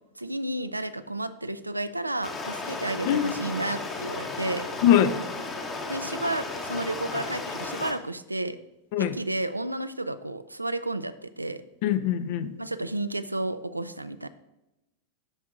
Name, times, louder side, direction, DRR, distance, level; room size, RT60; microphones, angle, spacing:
voice 1, 0.1-4.7 5.9-8.6 9.0-11.6 12.6-14.3, right 2 dB, 85° right, 12 dB, 0.3 m, -32 dB
Stream, 2.2-7.9, left 3 dB, 25° left, 1.0 m, -34 dB
voice 2, 3.1-3.4 4.8-5.2 8.9-9.2 11.8-12.5, left 10 dB, 50° left, 13 dB, 0.5 m, -22 dB
12.5 x 4.6 x 2.5 m, 0.94 s
figure-of-eight pair, 90°, 0 cm